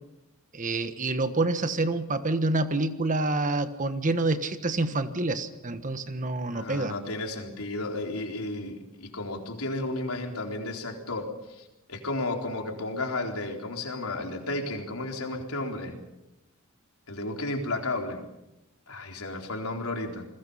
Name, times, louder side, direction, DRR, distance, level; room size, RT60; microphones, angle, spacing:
voice 1, 0.5-6.9, right 2 dB, 35° right, 10 dB, 1.4 m, -27 dB
voice 2, 6.3-16.0 17.1-18.2 18.9-20.3, left 2 dB, 85° left, 2 dB, 4.1 m, -33 dB
29.5 x 21.0 x 5.6 m, 0.92 s
head